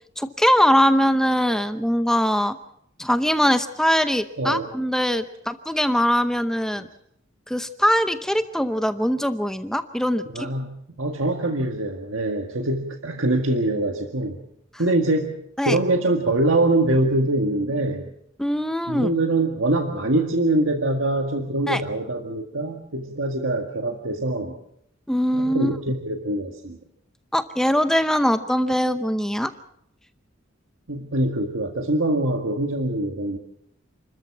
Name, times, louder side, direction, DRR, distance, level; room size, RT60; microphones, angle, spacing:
voice 1, 0.2-2.6 3.0-6.9 7.5-10.5 15.6-15.8 18.4-19.1 21.7-21.8 25.1-25.7 27.3-29.5, equal, 5° left, 10 dB, 0.7 m, -22 dB
voice 2, 4.4-4.7 10.3-14.4 14.8-15.3 15.6-18.1 18.9-24.5 25.3-26.8 30.9-33.4, right 2 dB, 70° right, 4 dB, 1.8 m, -24 dB
29.0 x 14.0 x 7.2 m, 0.74 s
head